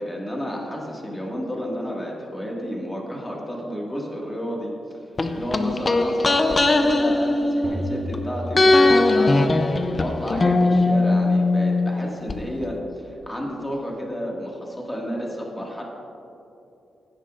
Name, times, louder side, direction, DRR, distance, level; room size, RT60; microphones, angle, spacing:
voice 1, 0.0-4.7 5.3-15.8, equal, 15° left, -2 dB, 1.9 m, -31 dB
sound 1, 5.2-8.2 8.5-12.4 12.6-12.7, left 2 dB, 30° left, 0.5 m, -20 dB
sound 2, 7.6-9.6, left 1 dB, 70° right, 2.0 m, -34 dB
16.5 x 9.8 x 2.5 m, 2.8 s
cardioid pair, 125°, 0 cm